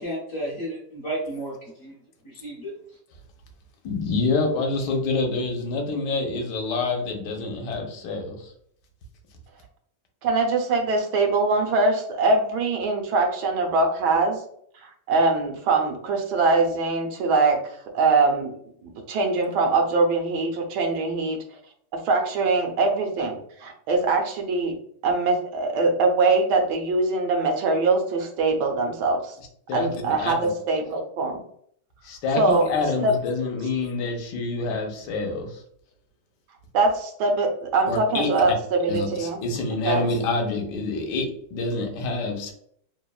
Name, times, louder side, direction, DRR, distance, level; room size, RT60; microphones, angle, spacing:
voice 1, 0.0-1.5 1.8-1.9 2.2-2.7, right 1 dB, 50° left, -4 dB, 0.8 m, -32 dB
voice 2, 3.8-8.5 29.7-30.3 32.0-35.6 37.9-38.3 38.9-42.5, left 3 dB, 80° left, 3 dB, 1.2 m, -27 dB
voice 3, 10.2-14.4 14.8-18.5 18.8-21.4 21.9-24.8 25.0-29.3 29.7-31.4 32.4-32.7 33.0-33.1 36.7-39.4 39.8-40.0, right 3 dB, 80° right, 3 dB, 1.2 m, -23 dB
3.1 x 2.1 x 2.2 m, 0.66 s
omnidirectional pair, 1.8 m